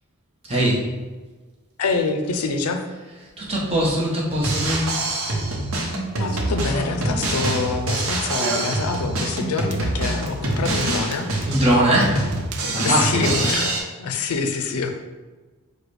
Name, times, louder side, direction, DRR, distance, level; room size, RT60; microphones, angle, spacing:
voice 1, 0.5-0.8 3.4-5.0 11.5-12.2 12.7-13.4, right 1 dB, 25° right, -4 dB, 1.0 m, -21 dB
voice 2, 1.8-2.8 6.1-11.3 12.8-14.9, left 4 dB, 80° left, 6 dB, 0.5 m, -26 dB
Drum kit, 4.3-13.8, right 1 dB, 65° right, 0.9 m, -25 dB
Run, 6.0-13.7, right 3 dB, 90° right, 0.5 m, -37 dB
4.8 x 2.3 x 4.7 m, 1.3 s
head